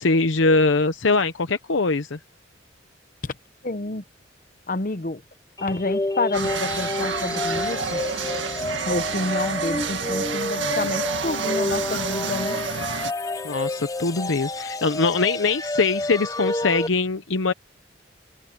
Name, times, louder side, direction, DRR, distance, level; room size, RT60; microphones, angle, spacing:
voice 1, 0.0-2.2 13.4-17.5, left 3 dB, 90° left, 0.9 m, -22 dB
voice 2, 3.6-4.0 4.7-5.2 5.6-8.0 8.9-12.6, left 2 dB, 45° left, 0.9 m, -28 dB
sound 1, 5.6-16.9, left 2 dB, 20° left, 0.6 m, -29 dB
sound 2, 6.3-13.1, right 5 dB, 80° right, 1.9 m, -29 dB
head